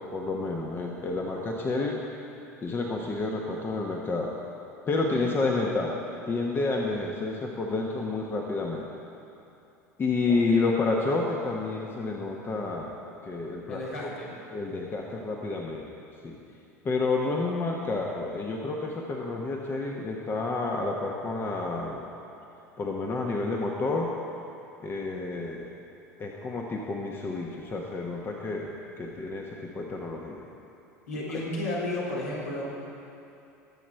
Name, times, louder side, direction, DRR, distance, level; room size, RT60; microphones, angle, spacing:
voice 1, 0.0-2.0 2.6-4.3 4.9-8.9 10.0-12.9 13.2-13.8 14.5-15.9 16.2-16.4 16.8-22.0 22.8-24.1 24.8-25.7 26.2-30.4 31.3-31.4, left 3 dB, 25° left, 0 dB, 1.2 m, -30 dB
voice 2, 4.9-5.3 10.3-10.4 13.7-14.3 31.1-32.8, left 1 dB, 70° left, -6 dB, 3.6 m, -33 dB
22.0 x 7.6 x 4.6 m, 2.8 s
figure-of-eight pair, 75°, 9 cm